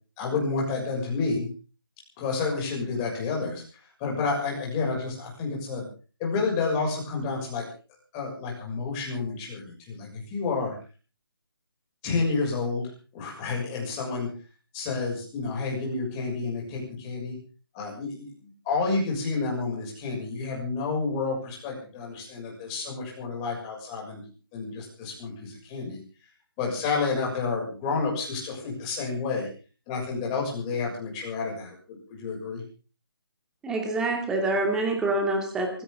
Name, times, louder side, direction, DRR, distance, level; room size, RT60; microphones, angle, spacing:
voice 1, 0.2-1.5 2.2-3.6 4.0-5.9 6.2-7.7 8.1-10.7 12.0-14.3 14.7-17.4 17.7-24.2 24.5-26.0 26.6-29.5 29.9-32.6, left 4 dB, 15° left, -1 dB, 6.6 m, -30 dB
voice 2, 33.6-35.8, right 2 dB, 5° right, 3 dB, 2.5 m, -26 dB
23.5 x 16.0 x 3.8 m, 0.36 s
hypercardioid pair, 165°, 13 cm